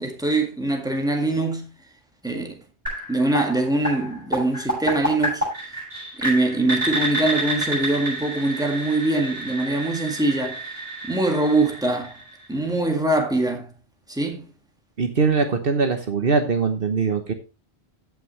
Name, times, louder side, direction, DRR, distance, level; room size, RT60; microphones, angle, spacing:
voice 1, 0.0-1.7 2.2-2.5 3.1-5.4 6.2-10.6 11.0-12.1 12.5-13.7 14.1-14.4, right 2 dB, 5° right, 1.9 m, -23 dB
sound 1, 2.9-12.7, right 1 dB, 40° right, 7.0 m, -29 dB
voice 2, 15.0-17.3, right 4 dB, 60° right, 1.3 m, -22 dB
15.5 x 5.8 x 3.2 m
omnidirectional pair, 1.1 m